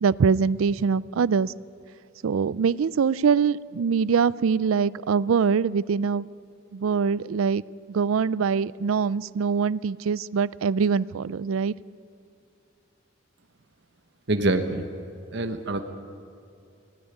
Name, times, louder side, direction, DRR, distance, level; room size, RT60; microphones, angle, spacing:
voice 1, 0.0-1.5 2.2-6.3 6.7-7.6 7.9-11.7, right 6 dB, 85° right, 20 dB, 0.4 m, -23 dB
voice 2, 14.3-14.9 15.3-15.8, right 2 dB, 60° right, 6 dB, 1.2 m, -25 dB
17.5 x 17.0 x 10.0 m, 2.6 s
head